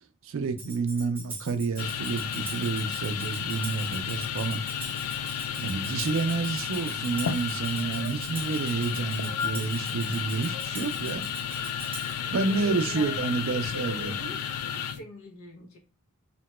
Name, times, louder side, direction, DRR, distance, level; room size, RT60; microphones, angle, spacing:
voice 1, 0.2-4.6 5.6-11.2 12.3-14.1, right 4 dB, 60° right, 0.4 m, -29 dB
Tambourine, 0.6-12.3, right 3 dB, 10° right, 0.6 m, -43 dB
sound 1, 1.8-15.0, left 8 dB, 85° left, 0.3 m, -32 dB
voice 2, 12.3-15.8, left 1 dB, 70° left, 0.7 m, -43 dB
2.8 x 2.2 x 2.9 m
head